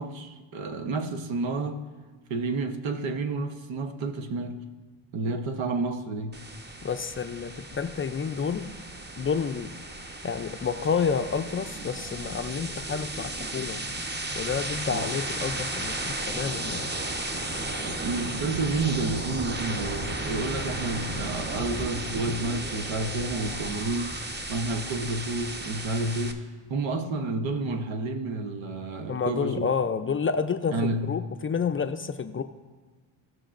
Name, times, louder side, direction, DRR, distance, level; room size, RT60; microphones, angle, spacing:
voice 1, 0.0-1.8 2.3-4.6 5.1-6.3 14.9-15.1 17.8-24.1 24.5-26.4 26.7-29.7 30.7-31.1, right 3 dB, 75° right, 1.1 m, -30 dB
sound 1, 6.3-26.3, right 1 dB, 20° right, 1.0 m, -34 dB
voice 2, 6.8-8.7 9.2-9.7 10.2-13.8 14.3-16.9 29.1-32.4, left 6 dB, 30° left, 0.5 m, -29 dB
17.0 x 6.1 x 2.5 m
cardioid pair, 80°, 46 cm